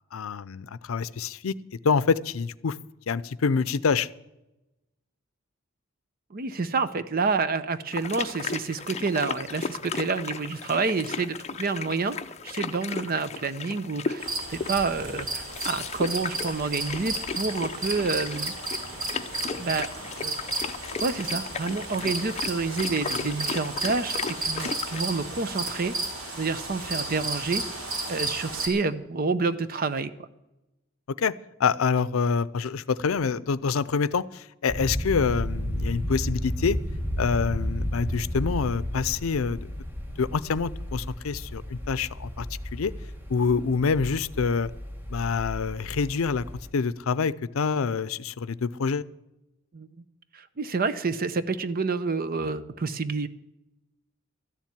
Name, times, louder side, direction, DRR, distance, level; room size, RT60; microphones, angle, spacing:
voice 1, 0.1-1.5 1.8-2.8 3.1-4.1 31.2-31.3 31.6-36.8 37.2-39.6 40.2-42.5 42.7-42.9 43.3-44.7 45.1-46.4 46.7-49.0, left 5 dB, 85° left, 18 dB, 0.5 m, -26 dB
voice 2, 6.3-12.2 12.4-18.5 19.6-19.9 20.2-20.7 21.0-25.9 26.3-27.6 28.1-30.3 49.7-49.9 50.3-53.3, right 4 dB, 45° right, 13 dB, 0.7 m, -28 dB
sound 1, 7.9-25.0, left 5 dB, 35° left, 0.6 m, -35 dB
sound 2, 14.2-28.7, right 2 dB, 85° right, 3.4 m, -33 dB
sound 3, 34.7-46.7, equal, 10° right, 1.5 m, -33 dB
13.0 x 7.4 x 9.4 m, 0.95 s
head